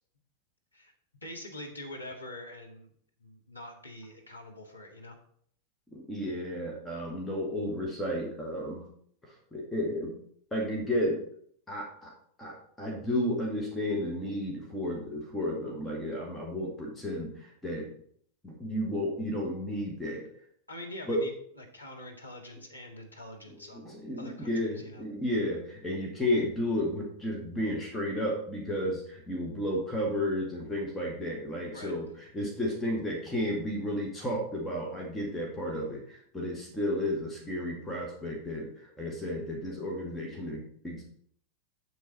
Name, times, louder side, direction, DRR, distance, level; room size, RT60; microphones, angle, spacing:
voice 1, 1.2-2.9 3.2-5.2 20.7-23.9 24.2-25.0 31.7-32.0, left 1 dB, 85° left, 1 dB, 1.8 m, -45 dB
voice 2, 5.9-8.8 9.5-10.1 10.5-11.2 11.7-12.1 12.4-17.3 17.6-17.9 18.4-20.2 21.1-21.2 23.8-32.1 32.3-41.0, left 1 dB, 10° left, -2 dB, 2.1 m, -32 dB
8.0 x 7.0 x 4.3 m, 0.63 s
figure-of-eight pair, 90°, 0 cm